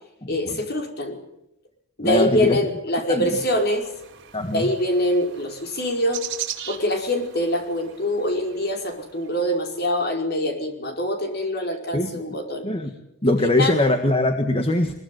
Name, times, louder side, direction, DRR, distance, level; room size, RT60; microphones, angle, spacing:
voice 1, 0.3-1.2 2.0-3.9 4.5-6.2 6.7-12.7 13.3-13.7, left 1 dB, 50° left, 3 dB, 5.3 m, -24 dB
voice 2, 2.0-2.6 3.1-3.3 4.3-4.7 11.9-12.1 12.6-12.9 13.2-14.9, left 1 dB, 25° left, 6 dB, 1.7 m, -21 dB
sound 1, 3.3-9.5, right 10 dB, 55° right, 4.2 m, -39 dB
22.5 x 22.5 x 9.4 m, 0.82 s
head